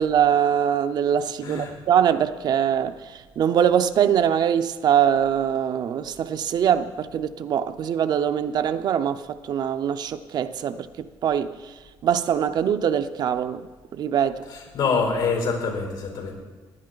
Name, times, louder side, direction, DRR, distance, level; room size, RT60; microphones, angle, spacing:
voice 1, 0.0-3.0 3.4-11.5 12.0-14.4, right 9 dB, 55° right, 11 dB, 0.6 m, -23 dB
voice 2, 1.4-1.7 14.5-16.3, left 4 dB, 90° left, 1 dB, 4.4 m, -26 dB
17.0 x 10.5 x 3.9 m, 1.4 s
cardioid pair, 165°, 9 cm